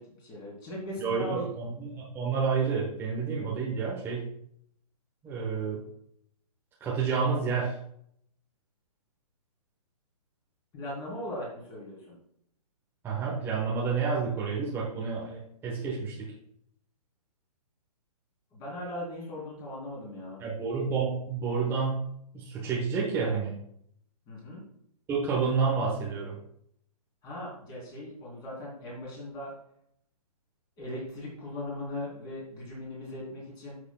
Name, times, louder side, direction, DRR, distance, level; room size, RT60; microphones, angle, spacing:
voice 1, 0.0-1.5 10.7-12.2 18.5-20.4 24.3-24.6 27.2-29.5 30.8-33.8, left 1 dB, 20° left, -4 dB, 3.6 m, -39 dB
voice 2, 1.0-4.3 5.2-5.8 6.8-7.7 13.0-16.3 20.4-22.0 22.3-23.5 25.1-26.4, right 5 dB, 10° right, -4 dB, 1.1 m, -29 dB
13.0 x 6.5 x 2.3 m, 0.71 s
hypercardioid pair, 155°, 20 cm